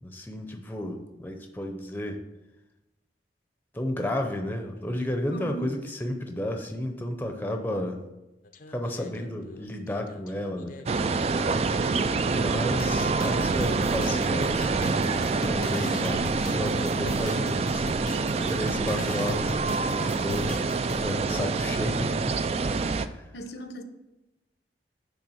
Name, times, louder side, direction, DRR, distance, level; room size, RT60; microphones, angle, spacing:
voice 1, 0.0-2.2 3.7-8.0 8.7-10.8 12.3-15.1 15.4-17.9 18.5-20.5 21.0-22.4 23.0-23.3, left 1 dB, 10° left, 4 dB, 0.6 m, -32 dB
voice 2, 5.3-5.8 23.3-23.8, right 1 dB, 75° left, 7 dB, 0.9 m, -37 dB
sound 1, 8.5-11.0 11.5-21.1, left 2 dB, 50° left, 0.5 m, -38 dB
sound 2, 10.9-23.1, right 4 dB, 35° right, 0.3 m, -26 dB
10.5 x 3.4 x 6.3 m, 0.99 s
head